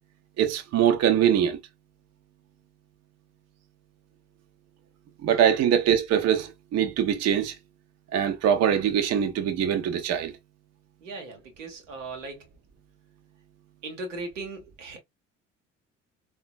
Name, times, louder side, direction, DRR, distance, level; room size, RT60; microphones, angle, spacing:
voice 1, 0.4-1.6 5.2-7.5 8.1-10.3, right 9 dB, 45° right, 0.7 m, -23 dB
voice 2, 11.0-12.5 13.8-15.0, right 3 dB, 85° right, 0.9 m, -38 dB
3.6 x 2.3 x 2.5 m
figure-of-eight pair, 55°, 36 cm